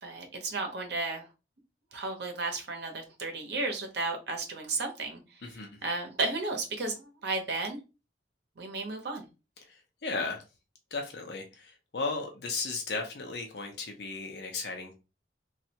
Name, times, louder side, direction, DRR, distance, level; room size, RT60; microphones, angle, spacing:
voice 1, 0.0-1.3 1.9-5.2 5.8-7.8 8.6-9.3, right 3 dB, 65° right, 0.9 m, -33 dB
voice 2, 10.0-10.4 10.9-14.9, left 3 dB, 65° left, 0.7 m, -35 dB
3.1 x 2.4 x 2.8 m
head